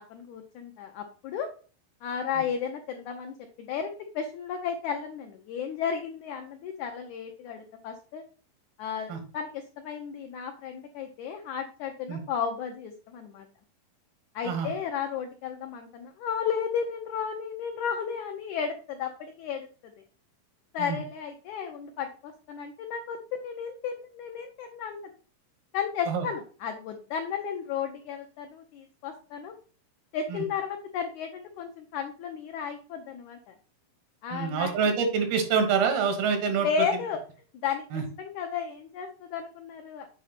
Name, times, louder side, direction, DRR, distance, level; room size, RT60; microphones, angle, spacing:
voice 1, 0.1-1.5 2.0-3.9 4.1-8.2 8.8-13.5 14.3-19.7 20.7-25.1 25.7-29.5 30.1-33.5 34.2-34.9 36.6-37.2 37.6-40.1, left 7 dB, 85° left, 5 dB, 1.7 m, -33 dB
voice 2, 34.3-36.7 37.9-38.0, right 6 dB, 85° right, 5 dB, 3.4 m, -26 dB
7.4 x 5.0 x 4.0 m, 0.39 s
omnidirectional pair, 4.3 m